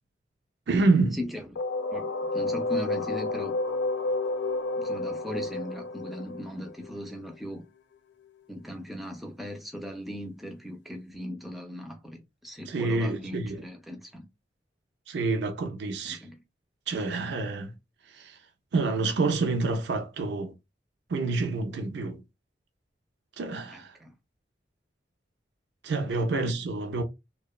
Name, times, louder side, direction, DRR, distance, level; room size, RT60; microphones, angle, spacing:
voice 1, 0.7-1.2 12.7-13.6 15.1-16.2 16.9-17.7 18.1-18.4 18.7-20.5 21.1-22.2 23.4-24.0 25.8-27.0, right 3 dB, 75° right, 0.4 m, -28 dB
sound 1, 1.6-7.3, left 2 dB, 85° left, 0.4 m, -30 dB
voice 2, 1.9-3.6 4.8-7.6 8.5-14.3 16.0-16.4 23.7-24.1 26.1-26.2, equal, ahead, 0.3 m, -38 dB
2.8 x 2.1 x 2.2 m
head